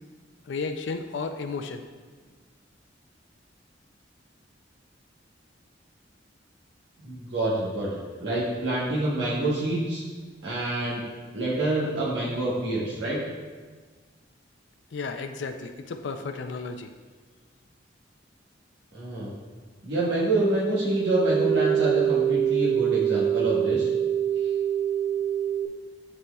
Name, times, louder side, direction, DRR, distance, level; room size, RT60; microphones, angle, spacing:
voice 1, 0.5-1.8 14.9-16.9, left 4 dB, 75° left, 6 dB, 0.4 m, -33 dB
voice 2, 7.0-10.0 10.4-11.0 11.3-13.2 18.9-19.3 19.8-23.9, right 1 dB, 65° right, -8 dB, 1.1 m, -27 dB
sound 1, 20.7-25.7, right 9 dB, 40° right, 0.5 m, -25 dB
11.0 x 4.2 x 2.3 m, 1.4 s
head